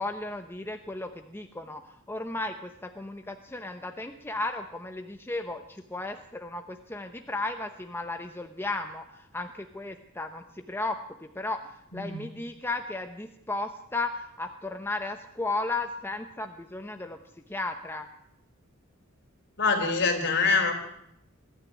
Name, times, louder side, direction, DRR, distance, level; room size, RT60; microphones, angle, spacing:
voice 1, 0.0-17.2 17.5-18.1, left 2 dB, 10° left, 5 dB, 0.9 m, -35 dB
voice 2, 19.6-20.7, left 4 dB, 55° left, 3 dB, 4.3 m, -24 dB
21.5 x 13.5 x 9.6 m, 0.76 s
head